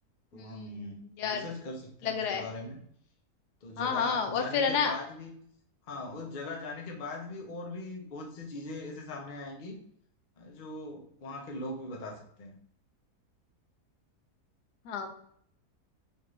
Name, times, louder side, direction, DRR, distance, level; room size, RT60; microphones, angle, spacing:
voice 1, 0.3-2.8 3.6-5.3 5.9-9.8 10.4-12.6, left 2 dB, 45° left, 1 dB, 0.7 m, -40 dB
voice 2, 2.0-2.4 3.8-5.0 14.9-15.1, left 6 dB, 90° left, 6 dB, 1.2 m, -29 dB
4.3 x 2.6 x 3.1 m, 0.67 s
omnidirectional pair, 1.7 m